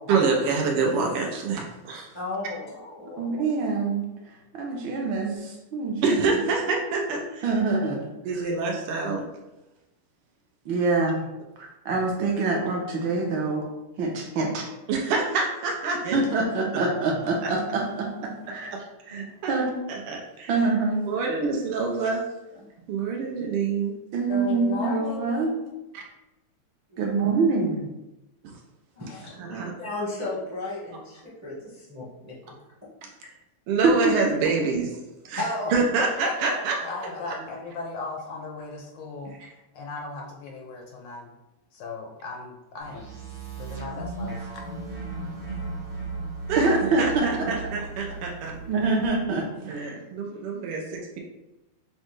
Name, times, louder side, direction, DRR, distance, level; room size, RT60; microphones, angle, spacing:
voice 1, 0.1-2.1 6.0-7.4 8.3-9.2 14.9-16.2 18.7-19.5 19.9-20.5 21.1-22.2 22.9-23.9 25.9-26.0 29.5-29.7 33.7-35.0 35.3-35.4 35.7-36.8 37.3-37.4 46.5-46.7 47.0-48.5 49.7-51.2, right 4 dB, 85° right, 0 dB, 1.6 m, -26 dB
voice 2, 2.1-3.4 7.4-7.5 16.2-16.3 18.6-18.7 19.1-19.3 22.5-22.7 26.9-27.1 28.9-32.6 35.4-35.7 36.2-37.2 48.1-48.2, left 2 dB, 25° right, -7 dB, 0.3 m, -35 dB
voice 3, 3.2-4.0 4.5-6.4 7.4-8.0 8.3-8.4 10.6-11.3 11.6-13.7 14.0-14.7 16.1-18.7 19.5-19.7 20.5-21.3 24.1-25.5 27.0-27.9 33.8-34.1 46.6-47.3 48.7-49.9, right 3 dB, 70° right, 0 dB, 1.4 m, -25 dB
voice 4, 24.3-25.7 36.8-39.4 39.7-41.4 41.7-43.1 43.6-44.7, left 3 dB, 75° left, 1 dB, 1.0 m, -36 dB
sound 1, 42.8-49.0, right 3 dB, 40° right, 0.8 m, -36 dB
6.1 x 2.2 x 3.1 m, 0.95 s
omnidirectional pair, 2.4 m